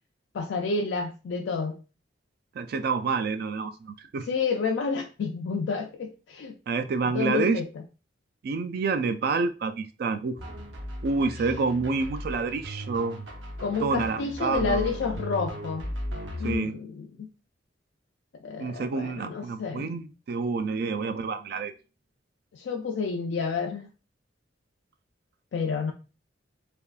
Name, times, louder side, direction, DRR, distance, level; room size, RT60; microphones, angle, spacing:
voice 1, 0.3-1.8 4.3-6.5 7.1-7.7 13.6-15.9 16.4-17.1 18.4-19.9 22.5-23.9 25.5-25.9, left 5 dB, 75° left, 2 dB, 0.4 m, -29 dB
voice 2, 2.6-4.3 6.7-7.6 8.4-10.4 11.0-13.2 13.8-14.9 16.4-16.8 18.6-21.7, right 4 dB, 55° right, 10 dB, 0.3 m, -28 dB
sound 1, 10.4-16.6, equal, 85° right, 0.7 m, -36 dB
3.4 x 2.3 x 2.4 m, 0.33 s
head